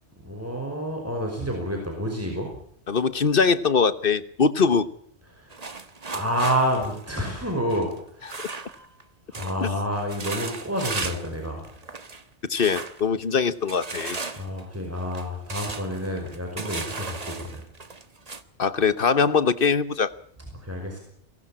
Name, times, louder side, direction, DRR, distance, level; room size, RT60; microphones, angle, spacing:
voice 1, 0.2-2.6 5.3-5.6 6.1-8.4 9.3-11.6 14.1-17.7 20.5-21.0, equal, 10° right, 1 dB, 5.5 m, -29 dB
voice 2, 2.9-4.9 12.5-14.2 18.6-20.1, left 5 dB, 55° left, 15 dB, 1.3 m, -22 dB
sound 1, 5.5-9.0 9.3-9.6 9.9-11.3 11.6-12.2 12.6-13.0 13.7-18.4, right 3 dB, 35° right, 1.4 m, -36 dB
23.0 x 18.0 x 8.7 m, 0.64 s
omnidirectional pair, 1.1 m